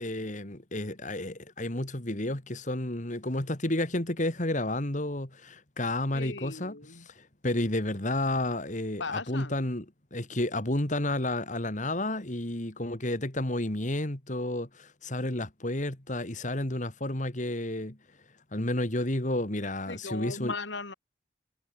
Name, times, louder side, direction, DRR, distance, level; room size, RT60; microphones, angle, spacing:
voice 1, 0.0-9.9 10.1-18.0 18.5-20.5, left 1 dB, 40° left, 2.5 m, -31 dB
voice 2, 6.1-7.1 9.0-9.6 19.9-20.9, left 3 dB, 75° left, 3.3 m, -37 dB
head